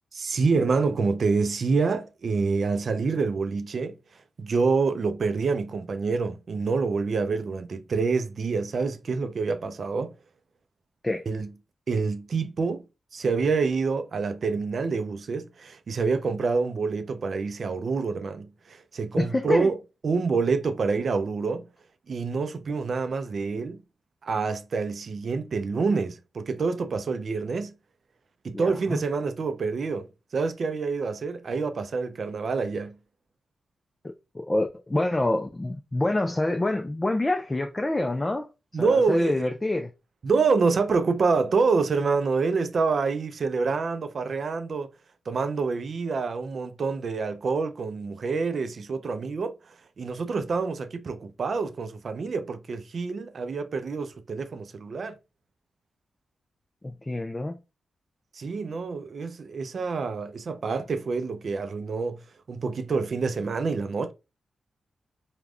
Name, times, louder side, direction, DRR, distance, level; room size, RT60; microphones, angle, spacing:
voice 1, 0.1-4.0 4.4-10.1 11.3-11.5 11.9-12.9 13.1-19.8 20.0-21.6 22.1-23.8 24.2-27.7 28.4-33.0 38.7-39.5 40.2-44.9 45.3-49.5 50.0-55.2 58.3-62.2 62.5-64.1, right 4 dB, 65° right, 0.4 m, -27 dB
voice 2, 19.2-19.7 28.5-29.0 34.0-38.5 38.8-39.9 56.8-57.6, left 2 dB, 25° left, 0.4 m, -27 dB
3.4 x 2.2 x 2.3 m
cardioid pair, 55°, 0 cm